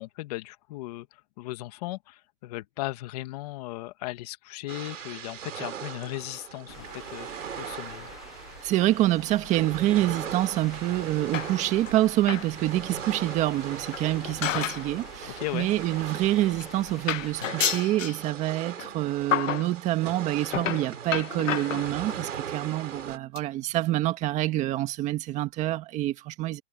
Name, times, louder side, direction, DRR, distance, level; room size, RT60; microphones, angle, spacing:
voice 1, 0.0-8.1 15.4-15.7, left 18 dB, 30° left, 1.6 m, -37 dB
sound 1, 4.7-23.2, right 8 dB, 80° right, 3.1 m, -39 dB
sound 2, 6.7-17.3, left 2 dB, 5° left, 0.3 m, -46 dB
voice 2, 8.6-26.6, right 15 dB, 20° right, 1.7 m, -26 dB
sound 3, 11.3-11.9 12.2-12.5 12.9-13.0 13.9-14.9 15.2-15.4 16.2-16.3 16.6-16.8 17.1-18.2 18.8-18.9 19.3-19.7 20.4-22.2 22.9-23.0 23.4-23.5 23.8-23.9 24.1-24.2, left 10 dB, 90° left, 1.0 m, -30 dB
hypercardioid pair, 160°, 37 cm